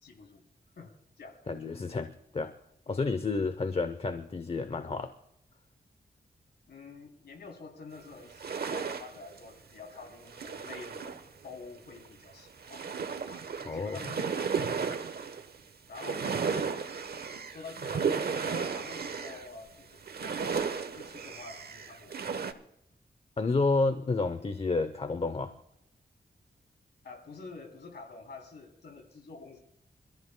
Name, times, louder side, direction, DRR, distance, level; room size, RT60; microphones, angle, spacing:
voice 1, 0.0-0.4 0.7-1.4 2.9-3.1 6.7-12.8 13.3-13.4 13.7-15.0 15.9-16.8 17.5-20.6 20.9-22.2 27.0-29.6, left 4 dB, 90° left, 2 dB, 3.3 m, -48 dB
voice 2, 1.5-2.5 2.9-5.1 13.6-14.0 23.4-25.5, left 3 dB, 35° left, 11 dB, 0.8 m, -30 dB
sound 1, 8.2-9.4 9.9-11.2 11.5-11.6 12.1-12.2 12.4-15.6 15.9-19.5 20.0-22.5, right 6 dB, 70° right, 1.1 m, -34 dB
28.0 x 14.0 x 2.3 m, 0.80 s
wide cardioid pair, 90°, 17 cm